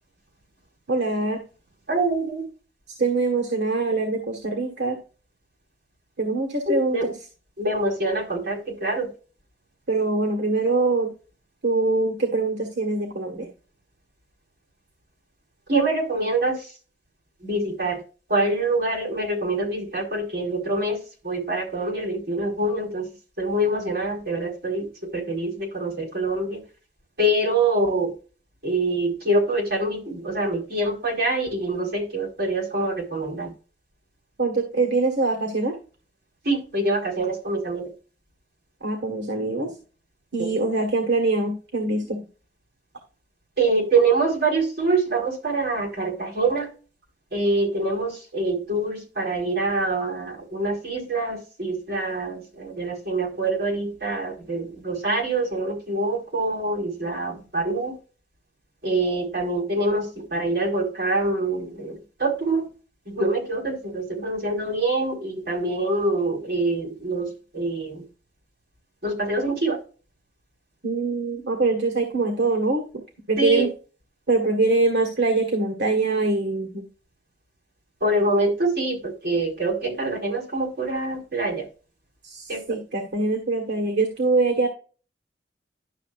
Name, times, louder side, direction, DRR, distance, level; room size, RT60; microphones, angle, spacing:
voice 1, 0.9-1.4 3.0-5.0 6.2-7.1 9.9-11.1 11.6-13.5 34.4-35.8 38.8-39.7 40.3-42.2 70.8-72.8 73.3-73.7 74.3-76.8 82.2-84.7, right 3 dB, 80° right, 2 dB, 1.6 m, -23 dB
voice 2, 1.9-2.4 6.7-7.1 7.6-9.1 15.7-16.7 17.4-18.0 18.3-23.1 23.4-26.6 27.2-28.1 28.6-33.5 36.4-37.9 40.4-40.5 43.6-46.7 47.3-58.0 58.8-62.7 63.0-68.0 69.0-69.8 73.4-73.7 78.0-81.7 82.5-82.8, right 2 dB, 60° right, -1 dB, 4.7 m, -25 dB
11.5 x 6.6 x 2.5 m, 0.35 s
head